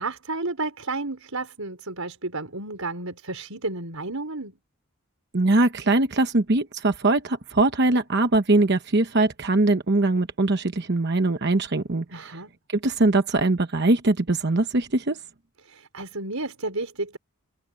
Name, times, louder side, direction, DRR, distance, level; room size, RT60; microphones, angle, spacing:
voice 1, 0.0-4.6 12.1-12.5 15.6-17.2, right 2 dB, 80° right, 5.3 m, -32 dB
voice 2, 5.3-12.4 12.7-15.2, right 2 dB, 50° right, 1.0 m, -22 dB
head